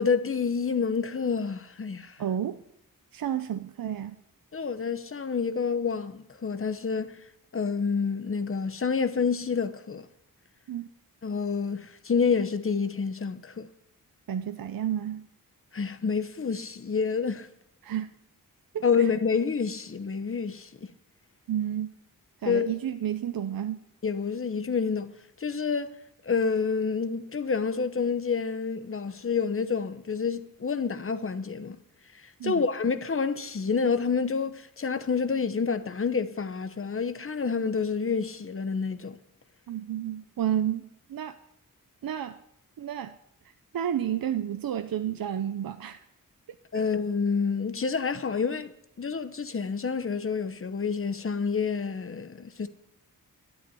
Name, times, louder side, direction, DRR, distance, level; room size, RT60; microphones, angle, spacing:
voice 1, 0.0-2.2 4.5-7.1 7.5-10.1 11.2-13.7 15.7-17.5 18.8-20.9 22.5-22.7 24.0-25.1 25.4-25.9 26.2-31.8 32.4-39.2 46.7-52.7, left 5 dB, 40° left, 0.9 m, -28 dB
voice 2, 2.2-2.6 3.1-4.2 10.7-10.9 14.3-15.3 17.8-18.1 18.7-19.1 21.5-21.9 22.4-23.8 32.4-32.6 39.7-41.4 42.0-42.4 42.8-43.1 43.7-46.0 46.7-46.9, right 10 dB, 80° right, 0.7 m, -31 dB
12.0 x 8.4 x 9.6 m
wide cardioid pair, 135°, 35 cm